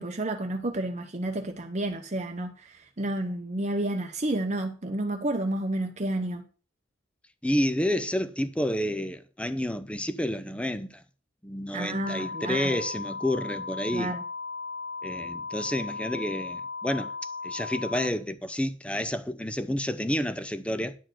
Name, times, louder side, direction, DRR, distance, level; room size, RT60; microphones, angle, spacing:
voice 1, 0.0-6.4 11.7-12.8 13.9-14.2, right 1 dB, 35° right, 0.9 m, -30 dB
voice 2, 7.4-11.0 11.4-14.1 15.0-17.1 17.4-21.0, left 1 dB, 5° left, 0.6 m, -29 dB
sound 1, 12.0-18.1, left 4 dB, 60° left, 1.5 m, -36 dB
10.5 x 4.5 x 7.7 m
head